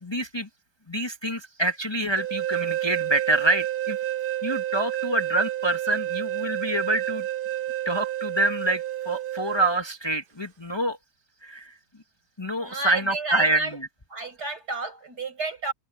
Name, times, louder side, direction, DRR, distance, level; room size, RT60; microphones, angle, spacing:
voice 1, 0.0-0.5 0.9-4.0 4.4-7.3 7.8-11.0 11.4-11.7 12.4-13.6, right 2 dB, 15° left, 1.4 m, -26 dB
sound 1, 2.2-9.8, right 13 dB, 50° right, 0.6 m, -30 dB
voice 2, 12.6-13.8 14.1-15.7, right 3 dB, 75° right, 6.9 m, -31 dB
omnidirectional pair, 1.7 m